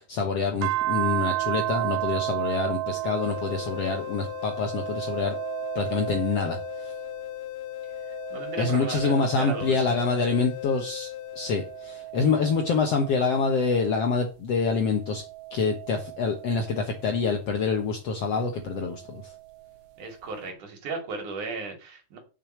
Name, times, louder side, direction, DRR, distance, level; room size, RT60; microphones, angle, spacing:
voice 1, 0.0-5.3 5.8-6.9 8.6-11.1 11.4-15.2 15.5-19.3, left 4 dB, 55° left, 3 dB, 2.1 m, -26 dB
sound 1, 0.6-7.3 7.8-10.7 11.3-14.1 14.8-17.3 18.6-19.7, right 17 dB, 85° right, 2.3 m, -34 dB
sound 2, 3.2-12.1, left 14 dB, 80° left, 1.5 m, -38 dB
voice 2, 8.1-9.9 20.0-22.2, right 4 dB, 70° right, 3 dB, 4.0 m, -36 dB
7.0 x 6.6 x 7.8 m, 0.33 s
omnidirectional pair, 3.7 m